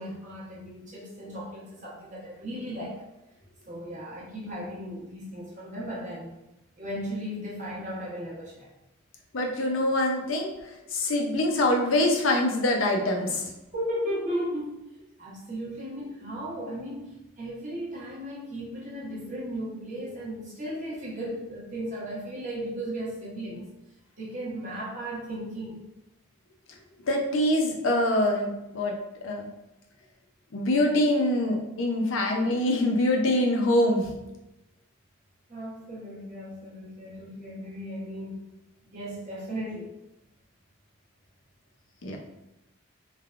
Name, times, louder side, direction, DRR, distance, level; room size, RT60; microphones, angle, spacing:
voice 1, 0.0-3.0 3.7-6.3 6.8-8.7 13.7-14.8 15.2-23.7 24.2-25.8 35.5-38.4 38.8-39.9, equal, 35° right, -6 dB, 0.9 m, -36 dB
voice 2, 9.3-13.5 27.1-28.9 29.2-29.5 30.5-34.1 42.0-42.2, left 1 dB, 70° left, 2 dB, 0.6 m, -24 dB
3.3 x 2.2 x 2.4 m, 0.93 s
head